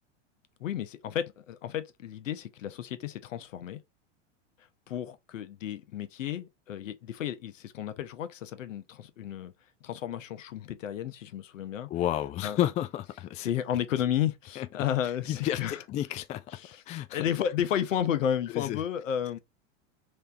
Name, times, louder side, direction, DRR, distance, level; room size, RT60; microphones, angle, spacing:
voice 1, 0.6-3.8 4.9-9.5 9.8-11.9 12.4-12.6 13.4-15.8 16.5-16.8 17.1-19.4, left 10 dB, 85° left, 0.9 m, -32 dB
voice 2, 11.9-13.5 14.6-14.7 15.3-16.4 16.9-17.2 18.5-18.8, left 12 dB, 20° left, 0.3 m, -31 dB
3.4 x 3.4 x 4.0 m
hypercardioid pair, 110°, 37 cm